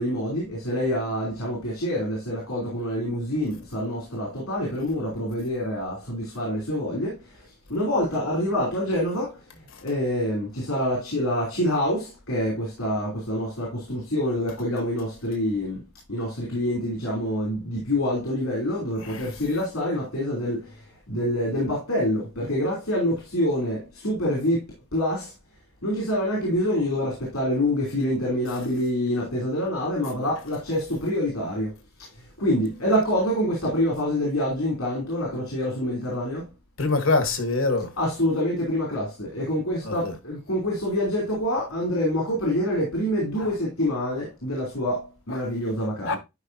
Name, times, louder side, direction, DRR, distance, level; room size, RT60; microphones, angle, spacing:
voice 1, 0.0-9.4 9.8-15.8 16.1-20.8 21.1-24.6 24.9-25.3 25.8-31.7 32.4-36.4 38.0-46.2, left 1 dB, 80° left, 3.4 m, -26 dB
voice 2, 36.8-37.9 39.8-40.1 43.4-43.5 45.3-45.4 46.0-46.2, left 3 dB, 65° left, 1.4 m, -25 dB
11.0 x 5.1 x 2.7 m
head